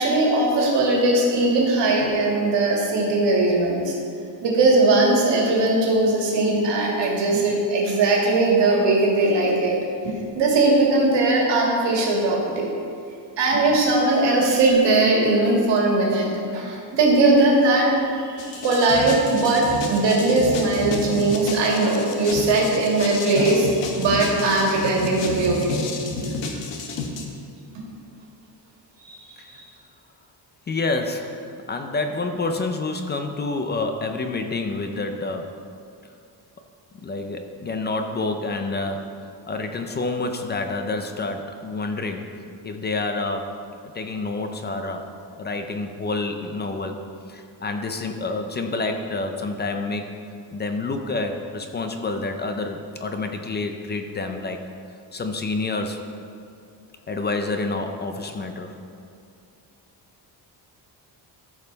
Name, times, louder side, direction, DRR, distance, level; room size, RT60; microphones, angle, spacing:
voice 1, 0.0-3.9 4.4-9.8 10.0-12.7 13.4-16.3 16.5-25.8 26.2-26.4 29.0-29.2 29.5-29.6, right 2 dB, 75° right, -3 dB, 2.3 m, -20 dB
sound 1, 18.4-27.3, left 3 dB, 80° left, 1.2 m, -31 dB
voice 2, 30.7-35.5 37.0-42.3 42.6-45.0 45.4-47.0 47.3-50.1 50.5-54.6 55.1-56.0 57.1-58.7, left 3 dB, 25° left, 5 dB, 0.4 m, -28 dB
13.5 x 5.5 x 4.0 m, 2.4 s
cardioid pair, 170°, 43 cm